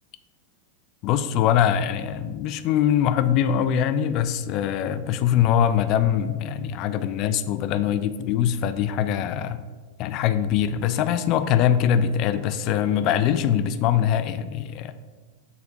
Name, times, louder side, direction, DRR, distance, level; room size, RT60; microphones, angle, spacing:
voice 1, 1.0-9.6 10.0-14.9, left 9 dB, 50° left, 11 dB, 0.4 m, -22 dB
4.8 x 4.1 x 4.7 m, 1.4 s
hypercardioid pair, 95°, 0 cm